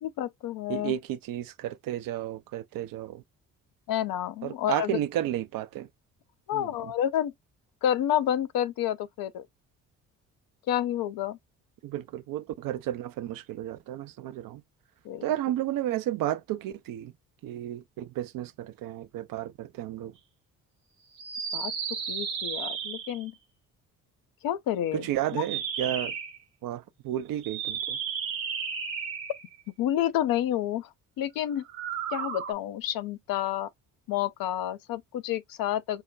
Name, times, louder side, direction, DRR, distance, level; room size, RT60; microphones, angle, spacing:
voice 1, 0.0-0.9 3.9-4.9 6.5-7.3 7.8-9.4 10.7-11.4 15.0-15.2 21.5-21.7 22.1-23.3 24.4-25.1 29.8-30.9 31.2-31.6 32.1-33.7 34.1-36.0, left 11 dB, 60° left, 0.6 m, -29 dB
voice 2, 0.7-3.2 4.4-5.9 6.5-6.7 11.8-14.6 15.2-17.1 17.4-20.1 24.9-26.1 26.6-28.0, right 12 dB, 55° right, 0.6 m, -32 dB
sound 1, 21.1-23.3 25.3-26.4 27.4-29.6 31.6-32.5, right 7 dB, 85° right, 0.9 m, -33 dB
5.5 x 2.1 x 2.3 m
hypercardioid pair, 45°, 41 cm